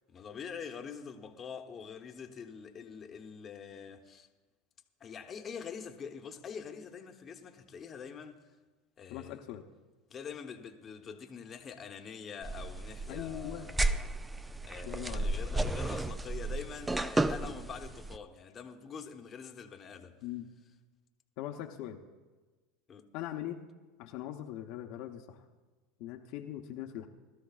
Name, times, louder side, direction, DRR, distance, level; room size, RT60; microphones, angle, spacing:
voice 1, 0.1-4.3 5.0-8.4 9.0-9.4 10.1-14.1 14.6-20.2 22.9-23.1, left 6 dB, 30° left, 1.1 m, -45 dB
voice 2, 9.1-9.6 13.1-13.7 14.8-15.3 20.2-20.5 21.4-22.0 23.1-23.6 24.0-25.4 26.0-27.1, left 12 dB, 65° left, 0.8 m, -41 dB
sound 1, 12.4-18.2, right 2 dB, 10° right, 0.4 m, -33 dB
21.0 x 13.0 x 2.4 m
supercardioid pair, 115°, 0 cm